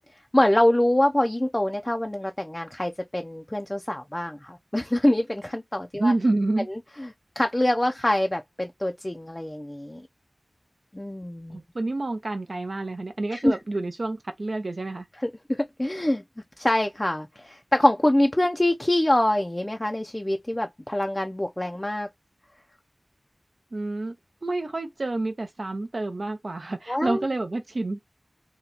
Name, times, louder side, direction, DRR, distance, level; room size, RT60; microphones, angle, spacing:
voice 1, 0.3-6.1 6.7-10.0 10.9-11.6 13.3-13.6 15.2-16.2 16.6-22.1 26.9-27.3, left 1 dB, 20° left, 0.4 m, -25 dB
voice 2, 6.0-6.7 11.5-15.0 23.7-24.1 24.4-28.0, right 2 dB, 65° right, 0.5 m, -28 dB
2.8 x 2.2 x 3.8 m
wide cardioid pair, 60°, 0 cm